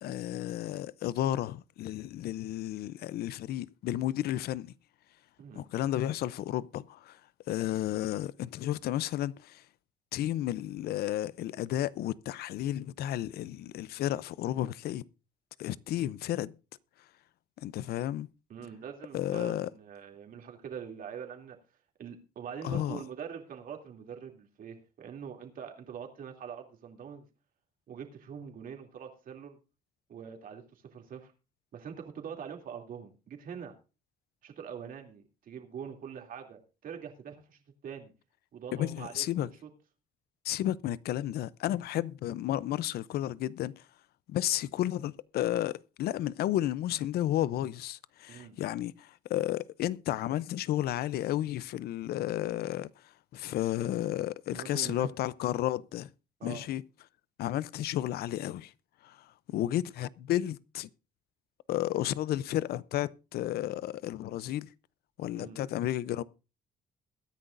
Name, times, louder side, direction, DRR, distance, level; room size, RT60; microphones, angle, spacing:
voice 1, 0.0-4.7 5.5-7.2 7.5-9.6 10.1-15.0 15.6-16.5 17.6-18.3 19.1-19.7 22.6-23.0 38.7-39.5 40.4-43.7 44.3-45.7 46.0-52.9 53.3-56.1 56.4-56.8 57.4-58.7 59.0-59.2 59.5-60.9 61.7-64.7 65.2-66.2, left 13 dB, 65° left, 0.6 m, -32 dB
voice 2, 5.4-5.7 18.5-21.6 22.0-27.3 27.9-29.6 30.1-31.3 31.7-33.7 34.4-38.1 38.5-39.7 48.3-48.6 54.5-55.1 56.4-56.7 65.3-65.6, right 7 dB, 55° right, 2.8 m, -44 dB
22.0 x 10.0 x 2.6 m
cardioid pair, 110°, 17 cm